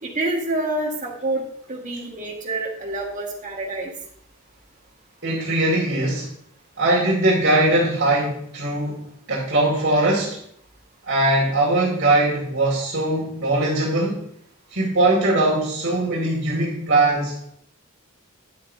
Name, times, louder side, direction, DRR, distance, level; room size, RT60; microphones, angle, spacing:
voice 1, 0.0-1.4 1.7-3.9, right 2 dB, 35° right, -1 dB, 1.7 m, -27 dB
voice 2, 5.2-6.3 6.8-10.4 11.1-14.3 14.7-17.4, right 2 dB, 55° right, -7 dB, 2.2 m, -21 dB
9.8 x 8.2 x 2.7 m, 0.69 s
head